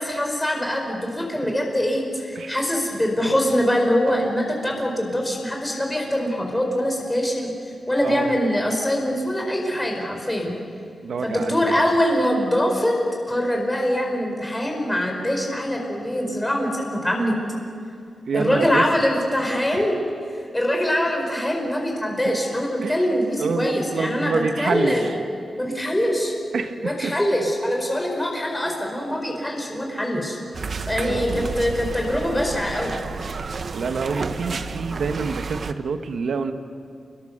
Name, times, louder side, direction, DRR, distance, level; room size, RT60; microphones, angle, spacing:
voice 1, 0.0-7.5 7.9-10.5 11.2-13.0 13.3-17.4 18.3-20.0 20.5-25.1 25.6-26.3 26.8-30.4 30.9-33.0, equal, 10° left, 1 dB, 5.3 m, -23 dB
voice 2, 11.0-11.6 18.3-18.8 19.7-19.8 22.2-22.3 22.8-23.0 23.4-25.1 26.5-27.1 31.0-31.5 33.7-36.5, right 5 dB, 80° right, 7 dB, 1.5 m, -27 dB
sound 1, 30.5-35.7, right 4 dB, 55° right, 1.1 m, -31 dB
29.0 x 22.0 x 6.8 m, 2.3 s
cardioid pair, 85°, 0 cm